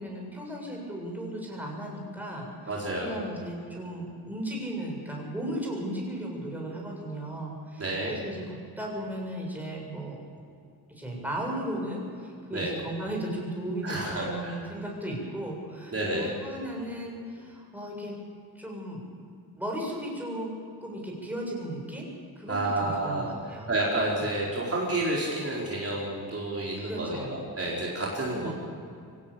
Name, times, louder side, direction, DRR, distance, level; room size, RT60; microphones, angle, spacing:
voice 1, 0.0-10.2 10.9-18.1 18.6-19.0 19.6-20.5 20.8-22.1 22.4-23.7 26.8-27.3 28.3-28.5, right 1 dB, 5° right, -2 dB, 7.1 m, -36 dB
voice 2, 2.7-3.2 7.8-8.1 12.5-12.7 13.8-14.6 15.9-16.3 22.5-23.3 23.7-28.5, right 2 dB, 40° right, -4 dB, 4.6 m, -30 dB
24.5 x 17.5 x 7.2 m, 2.4 s
wide cardioid pair, 115°, 38 cm